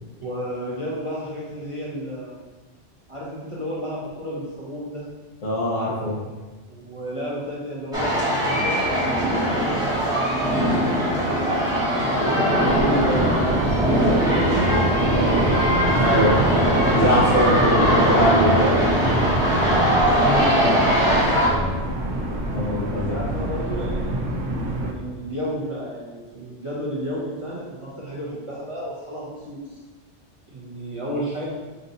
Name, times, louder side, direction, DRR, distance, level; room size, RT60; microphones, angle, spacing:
voice 1, 0.2-2.5 3.1-5.1 6.7-10.3 10.6-11.8 12.6-15.7 18.6-19.2 20.1-22.0 23.1-24.3 24.8-29.8 30.5-31.4, equal, 35° right, -7 dB, 0.6 m, -32 dB
voice 2, 5.4-6.2 16.0-16.4 16.9-18.7 22.5-23.2, left 1 dB, 80° left, -6 dB, 1.4 m, -22 dB
sound 1, 7.9-21.5, equal, 5° right, 0.8 m, -21 dB
sound 2, 12.5-24.9, right 1 dB, 85° right, 1.0 m, -29 dB
sound 3, 13.1-24.5 24.9-25.0, right 1 dB, 30° left, 0.7 m, -27 dB
5.2 x 2.6 x 2.7 m, 1.2 s
omnidirectional pair, 1.3 m